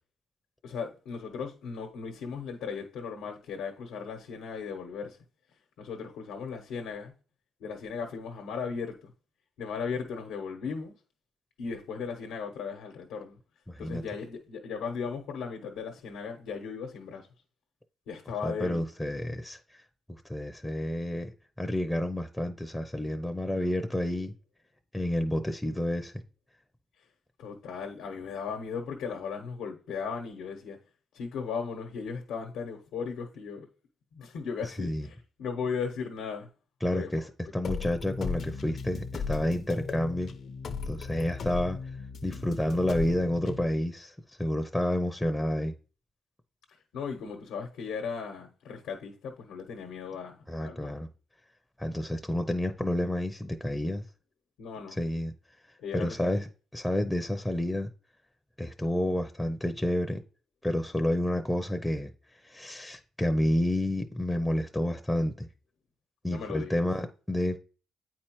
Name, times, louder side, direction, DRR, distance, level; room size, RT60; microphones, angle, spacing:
voice 1, 0.6-5.2 5.8-7.1 7.6-9.1 9.6-10.9 11.6-13.4 13.8-17.3 18.1-18.8 27.4-30.8 31.1-33.7 34.1-36.5 36.9-37.1 46.9-50.9 54.6-55.0 55.8-56.3 66.2-66.8, left 5 dB, 85° left, 0.9 m, -37 dB
voice 2, 13.7-14.0 18.4-19.8 20.2-21.3 21.6-24.3 24.9-26.1 34.8-35.1 36.8-40.3 40.8-41.8 42.2-45.8 50.5-51.1 51.8-54.0 55.0-55.3 55.9-56.5 56.7-57.9 58.6-60.2 60.6-62.1 62.4-65.5 66.2-67.6, left 1 dB, 5° left, 0.5 m, -29 dB
sound 1, 37.6-43.6, left 5 dB, 55° left, 0.6 m, -36 dB
8.3 x 4.5 x 3.0 m
cardioid pair, 90°, 0 cm